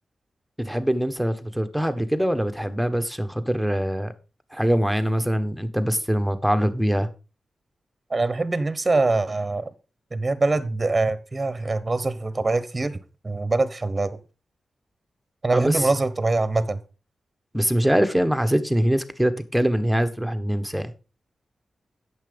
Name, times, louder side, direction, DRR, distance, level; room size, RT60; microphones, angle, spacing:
voice 1, 0.6-4.1 4.5-7.1 15.5-15.9 17.5-20.9, equal, ahead, 1.3 m, -23 dB
voice 2, 8.1-9.7 10.1-14.2 15.4-16.8, right 3 dB, 30° right, 1.0 m, -24 dB
8.9 x 7.0 x 5.2 m
cardioid pair, 60°, 0 cm